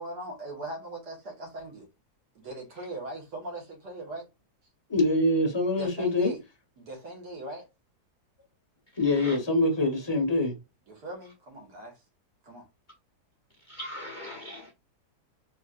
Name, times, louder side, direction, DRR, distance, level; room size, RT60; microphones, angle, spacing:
voice 1, 0.0-1.9 2.4-4.3 5.7-6.4 6.8-7.7 10.9-12.0 12.4-12.7, right 1 dB, 85° right, 2.2 m, -40 dB
voice 2, 4.9-6.3 9.0-10.5, left 2 dB, 20° left, 1.0 m, -24 dB
voice 3, 9.0-9.4 13.6-14.7, left 1 dB, 50° left, 0.6 m, -40 dB
4.4 x 3.0 x 2.4 m
omnidirectional pair, 1.7 m